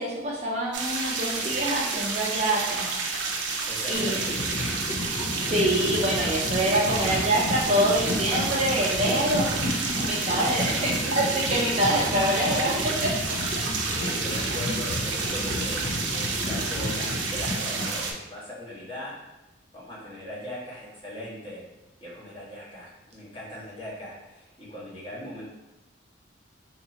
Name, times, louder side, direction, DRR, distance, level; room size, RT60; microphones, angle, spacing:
voice 1, 0.0-2.9 3.9-4.2 5.4-12.7 13.0-13.1, right 1 dB, 35° right, -4 dB, 0.5 m, -25 dB
sound 1, 0.7-18.1, right 4 dB, 80° right, 0.6 m, -30 dB
voice 2, 1.3-1.7 3.7-4.8 10.4-11.4 13.8-19.1 19.7-21.6 22.0-25.4, left 1 dB, 25° left, -8 dB, 1.3 m, -40 dB
sound 2, 3.9-18.2, left 2 dB, 45° left, 0.4 m, -32 dB
3.7 x 2.9 x 2.8 m, 1.0 s
head